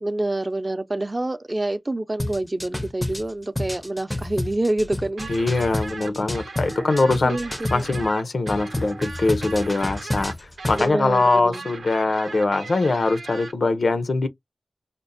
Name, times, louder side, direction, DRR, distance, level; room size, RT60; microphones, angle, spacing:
voice 1, 0.0-5.3 6.6-7.8 10.7-11.6, right 2 dB, 35° right, 0.5 m, -27 dB
sound 1, 2.2-8.1 8.5-10.9, left 1 dB, 20° left, 0.4 m, -30 dB
sound 2, 5.2-13.5, right 3 dB, 90° right, 0.6 m, -38 dB
voice 2, 5.3-7.4 7.7-10.3 10.7-14.3, left 3 dB, 75° left, 0.5 m, -22 dB
5.1 x 2.0 x 2.5 m
cardioid pair, 45°, 0 cm